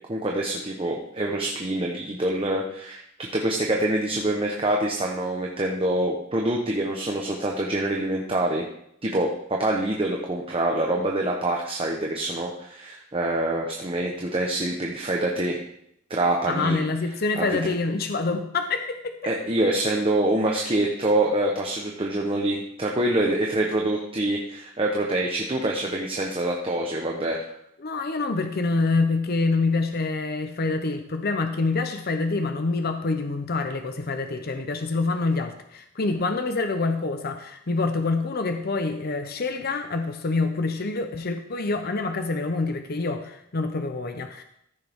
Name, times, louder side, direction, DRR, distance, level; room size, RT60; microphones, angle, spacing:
voice 1, 0.1-3.0 3.3-8.6 9.0-15.6 16.1-16.8 17.4-17.6 19.2-27.4, right 1 dB, 25° right, -1 dB, 1.0 m, -25 dB
voice 2, 16.5-19.2 27.8-44.4, left 3 dB, 50° left, 7 dB, 0.7 m, -26 dB
14.5 x 6.6 x 3.6 m, 0.75 s
head